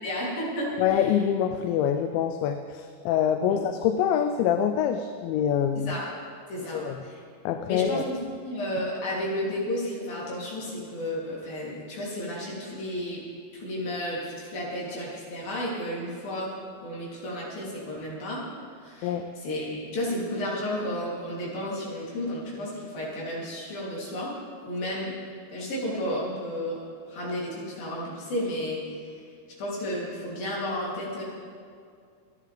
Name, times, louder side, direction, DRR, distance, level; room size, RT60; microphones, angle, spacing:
voice 1, 0.0-1.1 3.4-3.6 5.8-6.1 6.5-7.2 7.7-8.2 8.4-13.2 13.5-16.5 16.8-18.4 18.8-19.2 19.4-24.3 24.6-25.1 25.5-26.8 27.1-29.1 29.6-31.2, equal, 55° left, -5 dB, 4.8 m, -32 dB
voice 2, 0.8-5.9 6.7-7.0 7.5-8.0 19.0-19.3, left 9 dB, 85° left, 7 dB, 2.9 m, -25 dB
26.0 x 10.5 x 3.5 m, 2.3 s
omnidirectional pair, 5.1 m